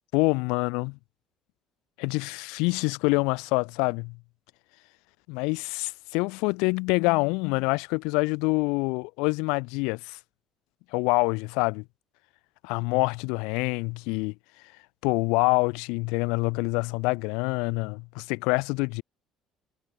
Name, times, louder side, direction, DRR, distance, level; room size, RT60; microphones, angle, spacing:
voice 1, 0.1-1.0 2.0-4.2 5.3-10.2 10.9-11.8 12.6-14.3 15.0-19.0, left 29 dB, 90° left, 0.7 m, -26 dB
cardioid pair, 130°, 0 cm